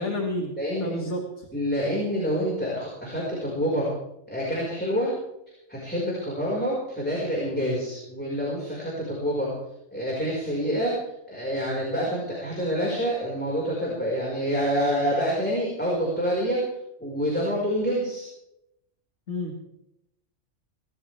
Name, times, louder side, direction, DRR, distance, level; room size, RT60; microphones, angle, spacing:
voice 1, 0.0-0.5 0.8-1.5 19.3-19.7, left 1 dB, 70° left, 0 dB, 2.4 m, -30 dB
voice 2, 0.6-1.1 1.5-3.9 4.3-5.1 5.5-9.5 9.9-16.7 17.0-18.3, equal, 10° left, -5 dB, 5.2 m, -27 dB
25.0 x 13.5 x 3.5 m, 0.84 s
omnidirectional pair, 1.3 m